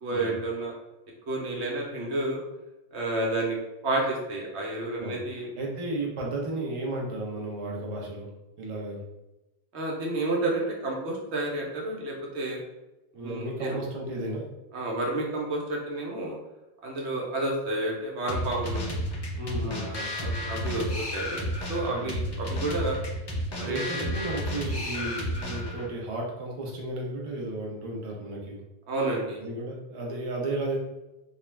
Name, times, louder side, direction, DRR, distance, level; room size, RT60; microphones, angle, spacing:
voice 1, 0.0-0.7 1.3-2.4 2.9-3.6 3.8-5.5 9.7-12.6 13.2-13.8 14.7-16.4 16.8-18.9 19.6-20.9 21.1-23.0 23.6-24.1 25.0-25.1 28.9-29.4, right 2 dB, 80° right, -2 dB, 1.0 m, -30 dB
voice 2, 5.0-8.3 8.6-9.0 13.1-14.4 19.4-20.3 21.9-22.2 23.6-28.6 29.4-30.8, right 2 dB, 40° right, -2 dB, 0.5 m, -34 dB
sound 1, 18.3-25.9, equal, 40° left, 0.3 m, -32 dB
2.4 x 2.2 x 3.1 m, 0.96 s
omnidirectional pair, 1.1 m